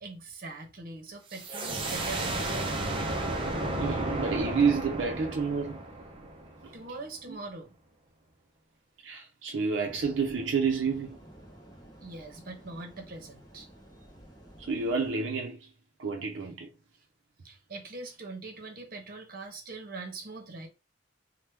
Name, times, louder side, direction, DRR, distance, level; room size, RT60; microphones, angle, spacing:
voice 1, 0.0-2.7 6.7-7.7 12.0-13.7 17.4-20.7, right 3 dB, 50° right, 0.8 m, -42 dB
sound 1, 1.3-6.8, right 2 dB, 30° right, 0.5 m, -33 dB
voice 2, 3.8-5.8 6.6-6.7 7.3-7.4 9.0-11.2 14.6-15.7 16.0-16.7, right 5 dB, 80° right, 0.5 m, -29 dB
sound 2, 9.8-15.1, equal, 20° left, 0.8 m, -52 dB
3.0 x 2.2 x 3.2 m
head